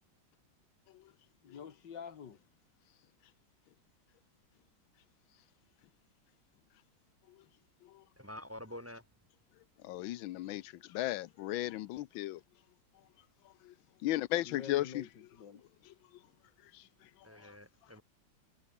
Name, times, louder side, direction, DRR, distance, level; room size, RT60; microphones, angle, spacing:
voice 1, 1.4-2.4 14.4-15.6, left 7 dB, 70° left, 2.3 m, -47 dB
voice 2, 8.2-9.1 17.2-18.0, left 1 dB, 5° right, 5.1 m, -47 dB
voice 3, 9.8-12.4 13.6-13.7 14.0-15.0 16.7-16.8, left 15 dB, 90° left, 1.5 m, -35 dB
omnidirectional pair, 2.1 m